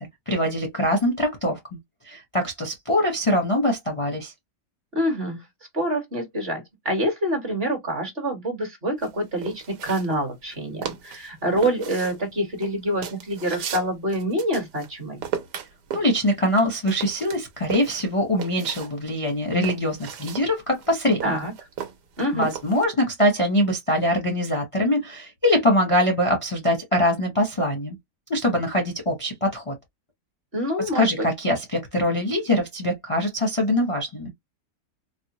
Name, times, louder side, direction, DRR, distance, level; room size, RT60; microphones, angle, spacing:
voice 1, 0.3-1.6 2.0-4.3 15.9-21.3 22.3-28.0 28.3-29.7 30.9-34.3, left 1 dB, 25° left, 0.7 m, -23 dB
voice 2, 4.9-5.4 5.7-15.2 21.2-21.5 22.2-22.5 30.5-31.3, equal, 40° right, 1.4 m, -26 dB
sound 1, 9.0-10.6 10.8-11.3 11.6-14.9 15.2-18.9 19.3-22.9, right 8 dB, 75° right, 1.4 m, -35 dB
4.2 x 2.0 x 2.9 m
omnidirectional pair, 1.9 m